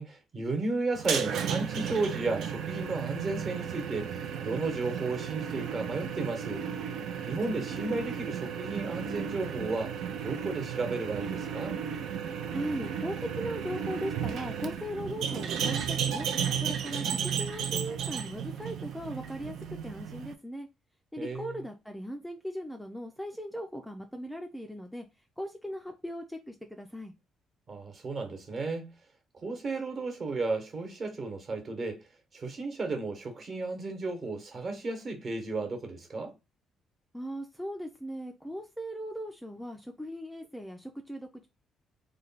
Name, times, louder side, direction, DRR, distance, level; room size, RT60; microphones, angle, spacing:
voice 1, 0.0-6.6 7.2-11.8 21.2-21.6 27.7-28.9 29.4-32.0 32.3-36.3, right 3 dB, 40° right, 1.1 m, -34 dB
sound 1, 0.9-20.3, right 8 dB, 70° right, 0.5 m, -34 dB
voice 2, 12.5-16.3 16.6-19.5 19.8-20.7 21.1-25.1 25.4-27.1 37.1-41.5, equal, ahead, 0.4 m, -38 dB
3.2 x 2.2 x 4.0 m
cardioid pair, 120°, 0 cm